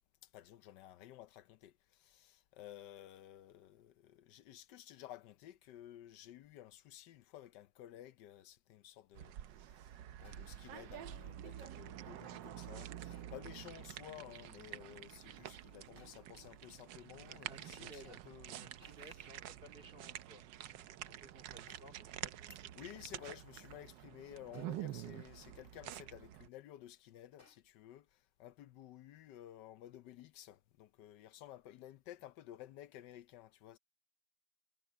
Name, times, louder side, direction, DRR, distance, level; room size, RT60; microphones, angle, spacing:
voice 1, 0.2-9.9 10.2-18.6 22.7-33.8, left 12 dB, 80° left, 1.3 m, -54 dB
sound 1, 9.1-26.5, right 12 dB, 90° right, 1.4 m, -48 dB
sound 2, 10.2-10.8 13.1-13.6 16.0-16.5 18.8-19.3 21.7-22.2 24.5-25.0 27.4-27.6, left 3 dB, 40° left, 3.7 m, -67 dB
voice 2, 17.3-18.2 18.6-20.5 20.8-22.7, right 1 dB, 30° right, 2.5 m, -58 dB
omnidirectional pair, 1.9 m